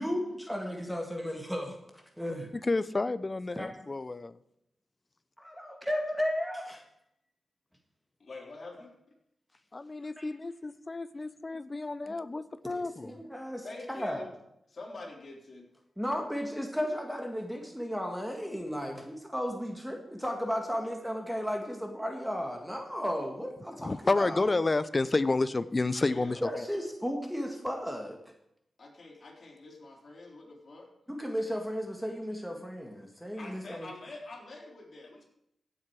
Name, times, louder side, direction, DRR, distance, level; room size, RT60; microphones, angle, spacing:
voice 1, 0.0-2.5 3.6-3.7 5.4-6.8 10.2-10.3 12.1-12.2 12.7-14.3 16.0-24.5 26.4-28.2 31.1-33.9, equal, ahead, 3 dB, 1.8 m, -34 dB
voice 2, 2.5-4.4 9.7-13.1 23.8-26.4, left 3 dB, 35° left, 15 dB, 0.7 m, -30 dB
voice 3, 8.2-9.0 13.6-14.3 14.7-15.7 23.8-24.0 26.1-26.5 28.8-30.9 33.4-35.2, left 2 dB, 55° left, -2 dB, 3.8 m, -46 dB
16.0 x 7.7 x 4.8 m, 0.78 s
cardioid pair, 65°, 0 cm